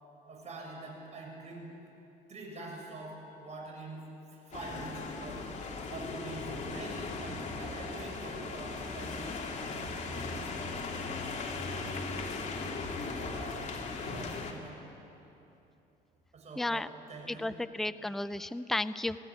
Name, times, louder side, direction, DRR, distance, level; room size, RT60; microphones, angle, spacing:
voice 1, 0.3-1.7 2.3-5.5 5.9-9.6 13.2-13.6 14.0-14.8 16.3-17.5, right 2 dB, 40° right, 0 dB, 6.7 m, -45 dB
sound 1, 4.5-14.5, left 3 dB, 45° left, 2.9 m, -38 dB
voice 2, 16.6-16.9 17.3-19.2, left 2 dB, ahead, 13 dB, 0.5 m, -33 dB
22.0 x 16.0 x 9.8 m, 2.9 s
cardioid pair, 110°, 17 cm